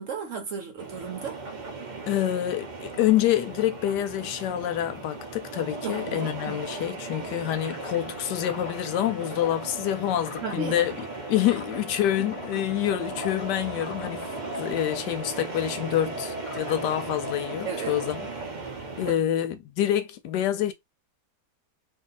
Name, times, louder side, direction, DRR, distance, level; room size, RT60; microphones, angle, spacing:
voice 1, 0.0-1.4 5.8-6.6 10.4-10.8 17.6-18.0 19.1-19.2, right 5 dB, 55° right, 0.9 m, -34 dB
sound 1, 0.8-19.1, right 3 dB, 90° right, 0.4 m, -37 dB
voice 2, 2.1-14.3 14.6-18.3 19.0-20.7, left 12 dB, 85° left, 1.2 m, -27 dB
sound 2, 7.5-18.4, left 3 dB, 35° left, 0.5 m, -42 dB
2.7 x 2.7 x 3.9 m
omnidirectional pair, 1.8 m